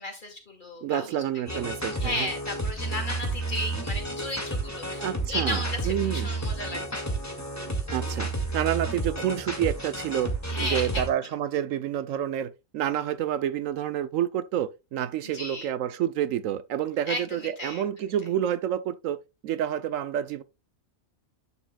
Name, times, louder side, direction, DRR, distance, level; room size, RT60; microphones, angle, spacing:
voice 1, 0.0-1.1 1.4-1.6 2.0-7.2 10.4-11.1 15.2-15.7 17.1-17.8, left 1 dB, 35° left, 2.4 m, -34 dB
voice 2, 0.8-2.3 5.0-6.3 7.9-10.3 10.6-19.2 19.4-20.4, right 10 dB, 75° right, 1.0 m, -29 dB
sound 1, 1.5-11.1, right 2 dB, 10° left, 1.8 m, -31 dB
10.5 x 7.0 x 2.2 m
omnidirectional pair, 1.4 m